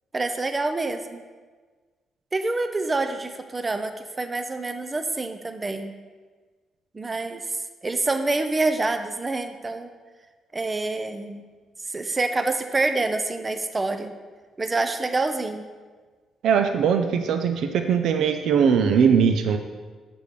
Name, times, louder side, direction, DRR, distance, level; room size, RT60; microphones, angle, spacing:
voice 1, 0.1-1.2 2.3-5.9 6.9-7.4 7.8-9.9 10.5-11.4 11.9-14.1 14.6-15.7, right 3 dB, 25° right, 8 dB, 0.5 m, -26 dB
voice 2, 16.4-19.6, right 7 dB, 75° right, 6 dB, 0.4 m, -20 dB
6.9 x 4.8 x 5.1 m, 1.4 s
cardioid pair, 90°, 0 cm